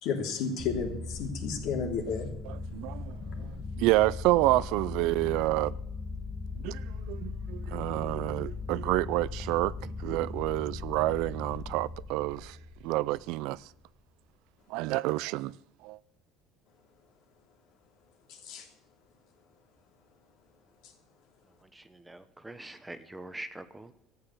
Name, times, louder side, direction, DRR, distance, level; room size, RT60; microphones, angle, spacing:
voice 1, 0.0-2.3 3.2-3.6 18.3-18.7 20.8-20.9, left 5 dB, 65° left, 3.2 m, -33 dB
sound 1, 0.6-13.5, left 3 dB, 25° left, 1.0 m, -39 dB
voice 2, 2.7-3.1 3.7-5.7 6.6-12.6 12.8-13.6 14.7-15.5 15.8-16.0, right 18 dB, 75° right, 0.4 m, -28 dB
voice 3, 21.6-23.9, right 1 dB, 10° right, 0.9 m, -44 dB
13.5 x 8.9 x 7.9 m
cardioid pair, 130°, 0 cm